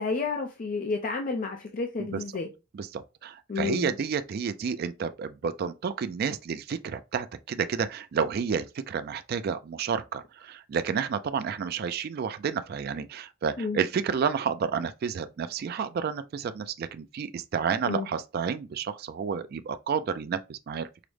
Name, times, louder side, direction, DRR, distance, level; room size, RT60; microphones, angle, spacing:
voice 1, 0.0-2.5 3.5-4.0 13.6-13.8 17.8-18.1, left 4 dB, 45° left, 0.5 m, -30 dB
voice 2, 2.7-20.9, right 6 dB, 50° right, 0.3 m, -30 dB
4.8 x 2.0 x 3.1 m
head